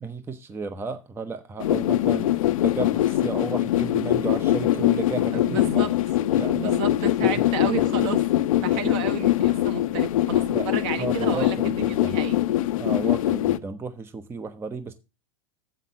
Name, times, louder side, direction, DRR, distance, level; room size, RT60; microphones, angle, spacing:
voice 1, 0.0-5.8 6.3-6.8 7.2-7.3 10.5-10.7 11.0-12.2 12.8-14.9, right 4 dB, 15° right, 0.7 m, -33 dB
sound 1, 1.6-13.6, left 13 dB, 70° left, 0.7 m, -23 dB
voice 2, 5.3-5.9 6.3-8.2 8.6-12.4, right 7 dB, 50° right, 1.4 m, -32 dB
7.3 x 5.9 x 6.8 m
hypercardioid pair, 125°, 18 cm